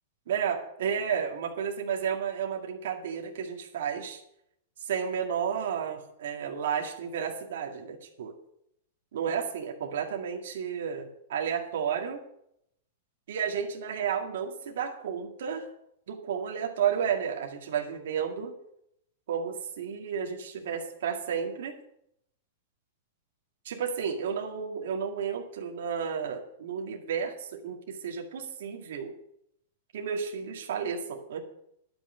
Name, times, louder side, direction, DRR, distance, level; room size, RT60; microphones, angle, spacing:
voice 1, 0.3-4.2 4.8-8.3 9.1-12.2 13.3-15.7 16.1-18.5 19.3-21.7 23.6-29.1 29.9-31.4, right 7 dB, 70° right, 0 dB, 2.0 m, -32 dB
11.5 x 6.0 x 9.1 m, 0.76 s
supercardioid pair, 155°, 0 cm